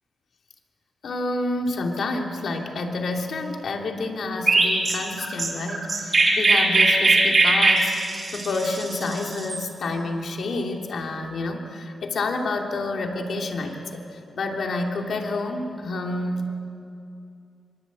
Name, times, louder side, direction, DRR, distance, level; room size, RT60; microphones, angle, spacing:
voice 1, 1.0-16.5, left 2 dB, 60° left, 2 dB, 3.0 m, -29 dB
Chirp tweet, 4.5-9.6, right 2 dB, 30° right, 5.7 m, -20 dB
26.5 x 25.0 x 8.5 m, 2.5 s
wide cardioid pair, 150°, 0 cm